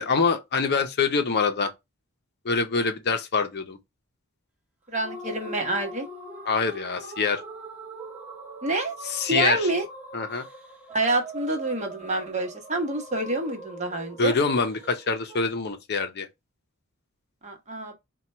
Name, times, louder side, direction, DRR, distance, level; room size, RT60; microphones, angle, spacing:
voice 1, 0.0-1.7 2.4-3.8 6.5-7.4 9.0-9.7 10.1-10.4 14.2-16.3, left 4 dB, 50° left, 0.6 m, -25 dB
voice 2, 4.9-6.1 8.6-8.9 9.3-9.8 10.9-14.4 17.4-17.9, right 2 dB, 35° right, 1.0 m, -27 dB
sound 1, 5.0-15.4, right 2 dB, 10° right, 1.0 m, -42 dB
4.3 x 2.3 x 4.2 m
head